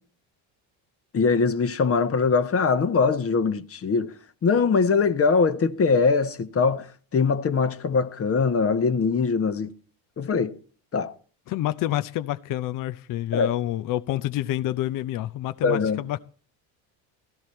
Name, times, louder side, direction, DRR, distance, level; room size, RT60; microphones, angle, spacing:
voice 1, 1.1-4.1 4.4-6.9 7.1-9.7 10.2-10.5 10.9-11.1 13.3-13.5 15.6-16.0, left 5 dB, 30° left, 1.1 m, -22 dB
voice 2, 11.5-16.2, left 14 dB, 45° left, 0.6 m, -28 dB
16.0 x 14.0 x 4.4 m
cardioid pair, 110°, 44 cm